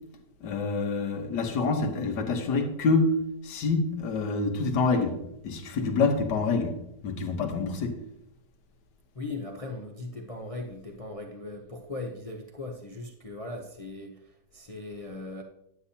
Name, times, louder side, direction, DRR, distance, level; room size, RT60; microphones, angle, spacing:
voice 1, 0.4-3.2 3.4-5.2 5.4-6.8 7.0-8.0, left 3 dB, 80° left, 6 dB, 1.7 m, -26 dB
voice 2, 9.1-15.4, left 2 dB, 50° left, 2 dB, 0.4 m, -39 dB
9.8 x 9.3 x 2.8 m, 0.82 s
omnidirectional pair, 1.8 m